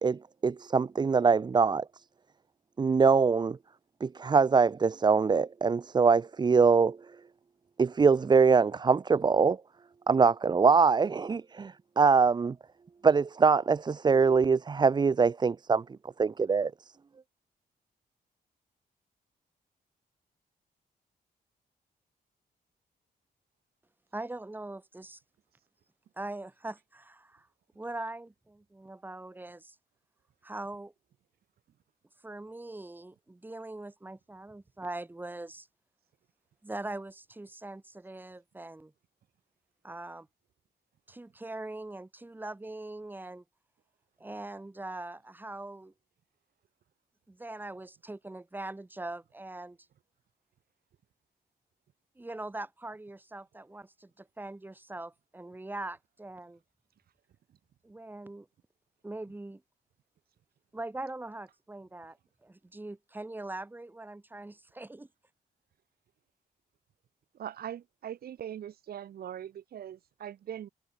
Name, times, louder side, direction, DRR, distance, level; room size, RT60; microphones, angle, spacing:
voice 1, 0.0-1.8 2.8-3.6 4.0-7.0 7.8-9.6 10.1-12.6 13.0-15.8 16.2-16.7, right 5 dB, 30° right, 0.7 m, -23 dB
voice 2, 24.1-25.2 26.2-27.5 27.7-29.7 30.4-30.9 32.2-35.7 36.6-38.9 39.8-40.3 41.1-43.4 44.2-45.9 47.3-49.8 52.1-56.6 57.8-58.5 59.0-59.6 60.7-62.2 62.4-65.1, right 2 dB, 10° right, 5.0 m, -41 dB
voice 3, 67.3-70.7, right 10 dB, 75° right, 3.8 m, -41 dB
wide cardioid pair, 145°, 16 cm